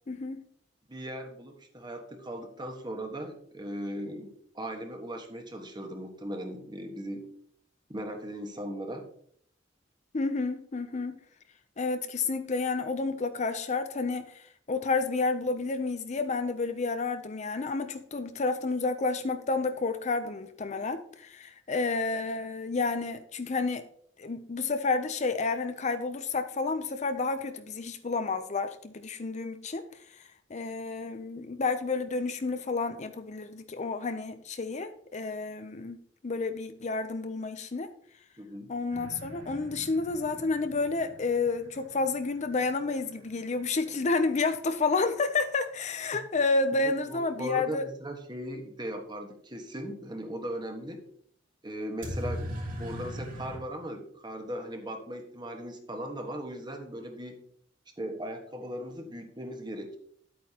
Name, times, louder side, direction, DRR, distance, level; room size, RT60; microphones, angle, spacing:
voice 1, 0.1-0.4 10.1-11.2 11.8-23.8 24.2-29.8 30.1-30.2 30.5-36.0 36.2-37.9 38.7-47.8, left 3 dB, 40° left, 9 dB, 0.5 m, -30 dB
voice 2, 0.9-7.3 7.9-9.1 38.4-38.7 46.8-51.0 51.6-57.4 58.0-60.0, right 1 dB, 25° right, 4 dB, 1.3 m, -38 dB
sound 1, 38.9-44.7 52.0-53.6, equal, 45° right, 2.8 m, -41 dB
10.0 x 8.6 x 2.9 m, 0.63 s
head